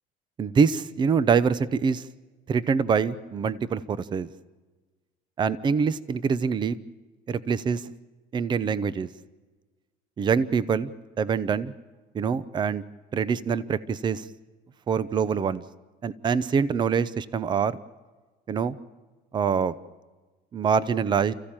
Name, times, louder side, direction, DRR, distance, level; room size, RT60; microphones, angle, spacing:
voice 1, 0.4-2.0 2.5-4.3 5.4-6.8 7.3-7.8 8.3-9.1 10.2-10.9 11.2-11.7 12.1-12.8 13.1-14.3 14.9-15.6 16.0-17.8 18.5-18.8 19.3-19.7 20.5-21.3, right 6 dB, 30° right, 17 dB, 0.7 m, -24 dB
29.5 x 15.0 x 8.9 m, 1.3 s
cardioid pair, 140°, 16 cm